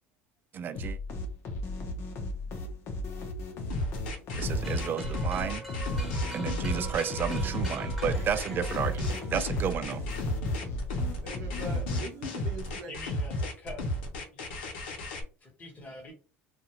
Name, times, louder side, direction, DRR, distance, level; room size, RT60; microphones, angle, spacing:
voice 1, 0.5-1.0 4.3-5.6 6.3-10.0, right 8 dB, 40° right, 0.3 m, -32 dB
sound 1, 0.7-12.3, left 2 dB, 55° left, 0.8 m, -37 dB
sound 2, 3.7-15.2, left 1 dB, 90° left, 0.8 m, -33 dB
sound 3, 4.6-10.2, right 2 dB, ahead, 1.3 m, -43 dB
voice 2, 11.2-13.0, right 2 dB, 70° right, 0.7 m, -43 dB
voice 3, 12.9-14.0 14.3-14.5 15.4-16.1, left 2 dB, 30° left, 1.3 m, -45 dB
2.4 x 2.4 x 2.9 m
supercardioid pair, 100°, 5 cm